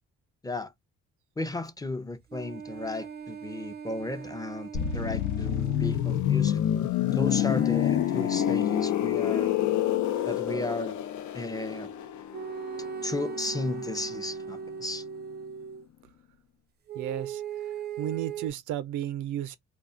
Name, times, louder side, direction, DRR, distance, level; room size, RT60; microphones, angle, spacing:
voice 1, 1.4-6.6 7.1-9.5 10.3-11.0 11.3-11.9 13.0-15.0, left 2 dB, 10° left, 0.5 m, -34 dB
sound 1, 2.3-6.0 7.2-10.3 12.3-15.8 16.9-18.5, right 6 dB, 35° right, 0.5 m, -39 dB
sound 2, 4.7-14.4 14.7-14.9, left 11 dB, 75° left, 0.6 m, -28 dB
voice 2, 16.9-19.6, right 11 dB, 90° right, 0.6 m, -34 dB
2.4 x 2.2 x 3.7 m
cardioid pair, 90°, 30 cm